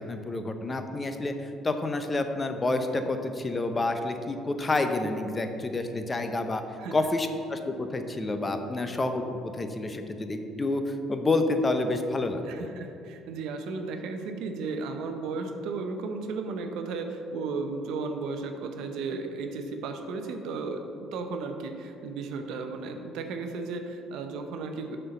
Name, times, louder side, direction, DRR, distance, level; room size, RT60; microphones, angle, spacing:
voice 1, 0.0-6.6 6.9-12.7, left 2 dB, 25° left, 7 dB, 0.6 m, -29 dB
voice 2, 12.4-20.8 21.1-25.0, right 4 dB, 75° right, 6 dB, 0.7 m, -34 dB
6.4 x 4.5 x 6.4 m, 2.7 s
supercardioid pair, 85°, 0 cm